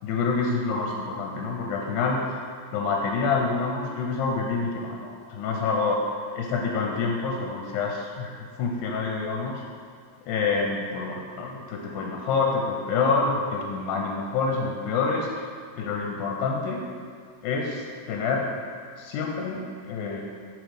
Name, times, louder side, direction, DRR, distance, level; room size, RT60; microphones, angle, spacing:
voice 1, 0.0-2.4 2.7-6.0 6.3-9.6 10.3-15.3 15.8-16.9 17.4-18.5 19.0-20.2, left 4 dB, 85° left, 0 dB, 2.1 m, -27 dB
6.2 x 3.1 x 5.0 m, 2.1 s
omnidirectional pair, 3.7 m